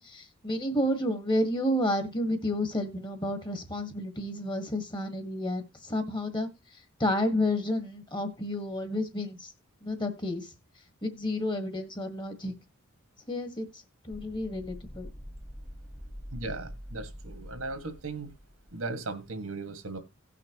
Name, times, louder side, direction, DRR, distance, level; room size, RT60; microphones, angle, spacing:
voice 1, 0.0-9.5 9.8-10.5 11.0-12.5 13.3-15.1, left 1 dB, 20° left, 1.5 m, -31 dB
sound 1, 14.1-19.0, equal, 5° left, 1.2 m, -45 dB
voice 2, 16.3-18.3 18.7-20.0, right 3 dB, 85° right, 1.8 m, -37 dB
17.5 x 5.9 x 3.0 m
head